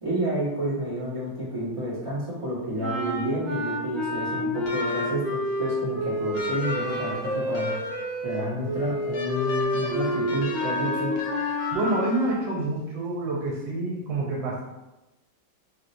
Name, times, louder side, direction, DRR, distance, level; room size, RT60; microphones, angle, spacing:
voice 1, 0.0-7.7 8.2-11.1, equal, 20° right, -9 dB, 1.2 m, -30 dB
sound 1, 2.8-12.4, equal, 40° right, 1.1 m, -29 dB
sound 2, 4.6-5.3 6.3-8.2 9.1-12.3, left 3 dB, 65° left, 0.9 m, -35 dB
voice 2, 11.7-14.6, right 1 dB, 80° right, -3 dB, 1.4 m, -27 dB
4.7 x 2.9 x 2.6 m, 1.0 s
omnidirectional pair, 2.0 m